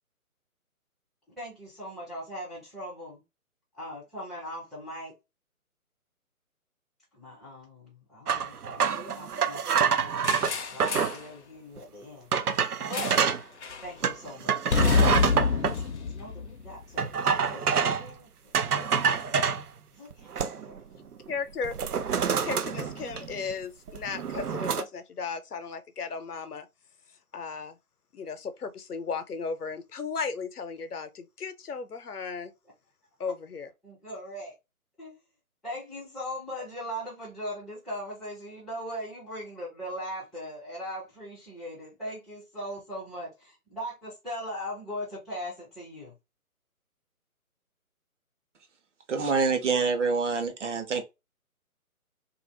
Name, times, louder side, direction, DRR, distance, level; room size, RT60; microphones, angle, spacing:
voice 1, 1.3-3.2 3.7-5.1 7.1-12.3 12.8-13.2 13.8-14.6 15.2-18.5 19.9-20.9 33.8-34.5 35.0-35.2 35.6-46.1, equal, ahead, 0.4 m, -40 dB
sound 1, 8.3-11.2 11.8-11.9 12.3-13.4 14.0-15.8 17.0-18.1 18.5-19.6 20.1-20.8 21.1-21.3 21.6-23.5 23.9-24.8, right 6 dB, 90° right, 0.6 m, -27 dB
sound 2, 10.2-11.3 12.9-13.3 13.6-13.9 14.7-17.0, left 5 dB, 55° left, 0.5 m, -27 dB
voice 2, 21.3-21.8 22.4-26.7 27.3-27.8 28.1-32.5 33.2-33.7, left 5 dB, 85° left, 0.7 m, -35 dB
voice 3, 49.1-51.0, right 4 dB, 55° right, 0.8 m, -26 dB
2.5 x 2.4 x 3.3 m
figure-of-eight pair, 145°, 44 cm